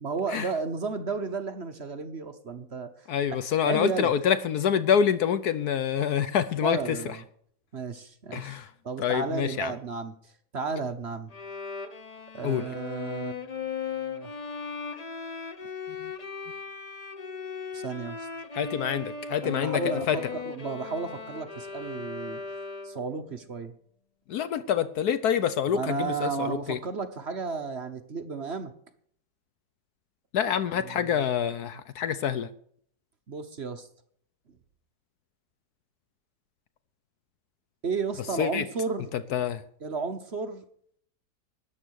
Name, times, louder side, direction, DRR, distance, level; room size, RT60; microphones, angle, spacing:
voice 1, 0.0-2.9 3.7-4.1 6.6-7.2 7.7-8.6 8.8-10.1 10.5-11.3 12.3-14.3 17.7-18.3 19.4-22.4 22.8-23.7 25.7-28.7 30.7-31.2 33.3-33.9 37.8-39.1 39.8-40.6, right 4 dB, 45° right, 8 dB, 1.1 m, -33 dB
voice 2, 3.1-7.0 8.3-8.7 9.0-9.7 12.4-12.6 18.5-20.2 24.3-26.8 30.3-32.5 38.4-38.6 39.3-39.6, left 8 dB, 65° left, 13 dB, 1.2 m, -26 dB
Bowed string instrument, 11.3-23.2, left 5 dB, 35° left, 0.7 m, -37 dB
13.0 x 9.9 x 6.4 m, 0.62 s
omnidirectional pair, 1.9 m